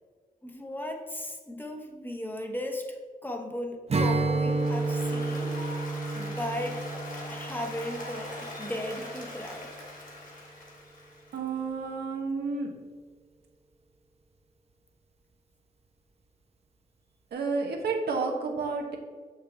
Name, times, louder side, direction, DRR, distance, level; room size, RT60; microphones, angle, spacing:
voice 1, 0.4-5.5 6.1-6.8 7.3-9.8, left 1 dB, 10° left, 3 dB, 1.0 m, -36 dB
Strum, 3.9-9.3, right 3 dB, 40° right, 0.7 m, -31 dB
Applause, 4.3-11.5, left 2 dB, 55° left, 2.1 m, -42 dB
voice 2, 11.3-12.7 17.3-19.0, right 4 dB, 90° right, 2 dB, 1.1 m, -30 dB
6.6 x 6.5 x 3.4 m, 1.5 s
cardioid pair, 80°, 16 cm